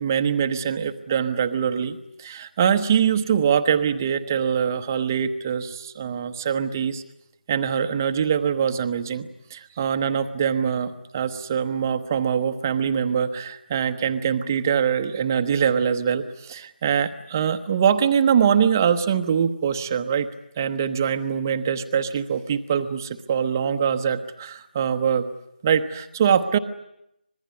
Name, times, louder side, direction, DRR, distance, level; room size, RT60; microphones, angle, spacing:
voice 1, 0.0-7.0 7.5-20.3 20.6-25.3 25.6-26.6, right 7 dB, 15° right, 8 dB, 0.9 m, -23 dB
25.5 x 21.0 x 9.5 m, 0.80 s
figure-of-eight pair, 170°, 5 cm